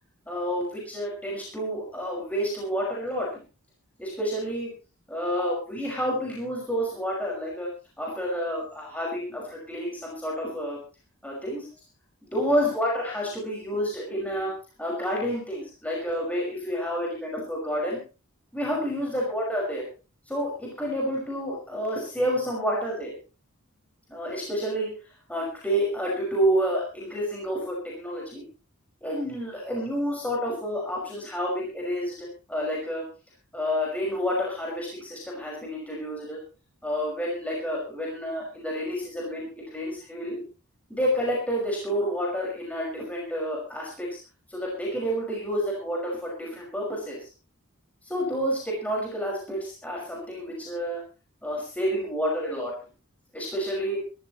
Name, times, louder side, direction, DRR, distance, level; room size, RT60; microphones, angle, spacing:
voice 1, 0.3-3.3 4.0-4.7 5.1-7.7 8.0-10.8 11.2-11.7 12.3-14.5 14.8-18.0 18.5-19.8 20.3-23.1 24.1-24.9 25.3-28.4 29.0-33.0 33.5-36.4 36.8-40.4 40.9-44.1 44.5-47.2 48.1-51.0 51.4-52.7 53.3-54.0, equal, 5° left, -4 dB, 5.7 m, -29 dB
23.5 x 14.5 x 3.1 m, 0.33 s
head